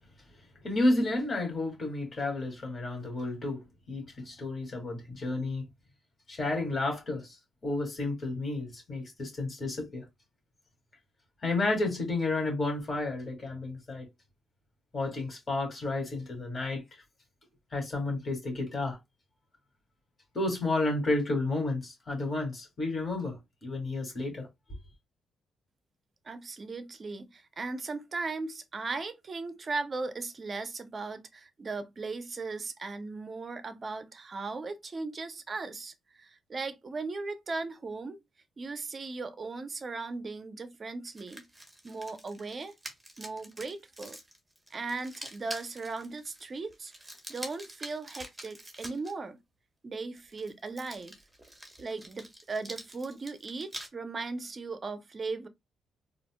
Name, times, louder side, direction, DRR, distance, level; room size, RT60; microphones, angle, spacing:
voice 1, 0.6-5.6 6.3-7.4 7.6-10.0 11.4-14.1 14.9-16.8 17.7-19.0 20.3-24.5, left 2 dB, 35° left, 2.1 m, -31 dB
voice 2, 26.2-38.2 38.6-41.4 41.8-42.7 43.2-44.2 44.7-46.9 47.3-49.4 49.8-51.1 51.8-55.5, right 3 dB, 35° right, 0.6 m, -37 dB
sound 1, 41.1-49.1 50.2-53.9, right 1 dB, 10° right, 1.1 m, -46 dB
4.1 x 2.5 x 2.2 m
cardioid pair, 90°, 0 cm